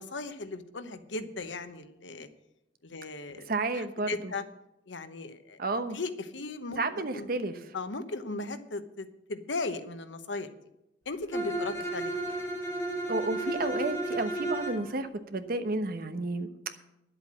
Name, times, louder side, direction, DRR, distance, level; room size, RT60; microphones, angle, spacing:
voice 1, 0.0-2.3 2.8-4.4 4.9-5.6 5.9-6.8 7.1-7.3 7.7-10.5 11.1-12.3, left 3 dB, 85° left, 10 dB, 1.1 m, -37 dB
voice 2, 3.5-4.3 5.6-6.0 6.8-7.7 13.1-16.5, right 2 dB, 55° right, 9 dB, 1.0 m, -31 dB
Bowed string instrument, 11.3-14.9, right 2 dB, 15° left, 3.0 m, -33 dB
11.0 x 8.0 x 7.5 m, 0.87 s
head